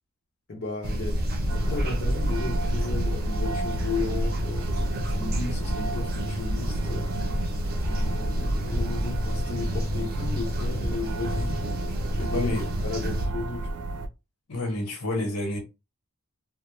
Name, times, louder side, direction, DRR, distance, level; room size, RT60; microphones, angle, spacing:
voice 1, 0.5-4.7 5.2-7.1 7.8-11.6 12.2-12.5 12.8-13.7, left 3 dB, 50° left, 0.6 m, -34 dB
sound 1, 0.8-13.3, equal, 45° right, 0.6 m, -29 dB
sound 2, 1.5-14.1, right 1 dB, 85° right, 0.4 m, -32 dB
voice 2, 12.3-12.7 14.5-15.6, left 1 dB, 85° left, 1.0 m, -29 dB
2.3 x 2.1 x 2.9 m
head